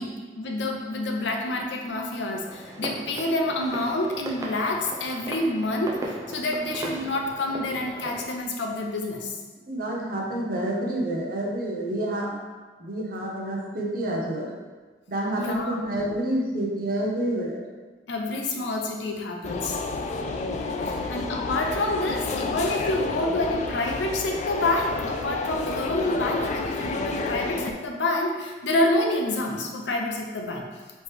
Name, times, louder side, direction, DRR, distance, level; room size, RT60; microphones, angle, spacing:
voice 1, 0.0-9.3 15.4-15.8 18.1-19.8 20.9-30.7, left 2 dB, 80° left, 1 dB, 0.6 m, -28 dB
sound 1, 2.4-8.3, right 1 dB, 20° right, 0.5 m, -37 dB
voice 2, 9.7-12.4 12.8-14.6 15.1-17.6 20.7-20.9, right 1 dB, 55° right, -1 dB, 0.8 m, -28 dB
sound 2, 19.4-27.7, left 3 dB, 40° left, 0.3 m, -30 dB
4.2 x 3.1 x 3.3 m, 1.4 s
head